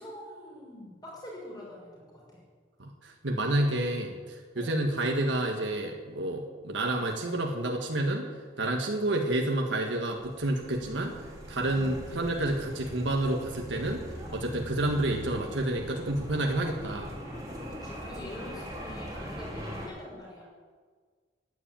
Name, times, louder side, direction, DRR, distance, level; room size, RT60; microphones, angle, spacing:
voice 1, 0.0-2.4 4.6-4.8 17.7-20.4, left 1 dB, 20° left, -4 dB, 6.0 m, -45 dB
voice 2, 2.8-8.3 8.6-11.2 11.5-14.0 14.3-17.1, right 1 dB, 80° right, 1 dB, 1.7 m, -29 dB
sound 1, 10.1-19.9, equal, 20° right, 2.7 m, -41 dB
12.0 x 10.0 x 9.0 m, 1.6 s
head